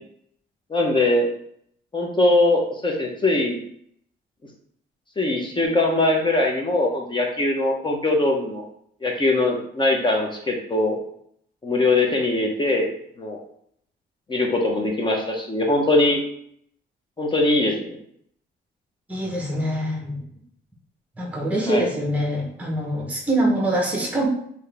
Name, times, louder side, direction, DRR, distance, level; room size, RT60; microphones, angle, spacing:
voice 1, 0.7-1.3 1.9-3.6 5.2-8.6 9.0-11.0 11.6-12.9 13.2-13.4 14.3-16.2 17.2-18.0 21.7-21.9, left 2 dB, 25° left, 1 dB, 0.9 m, -21 dB
voice 2, 19.1-20.2 21.2-24.3, right 1 dB, 5° right, 0 dB, 1.0 m, -24 dB
3.6 x 2.8 x 3.4 m, 0.67 s
cardioid pair, 90°, 20 cm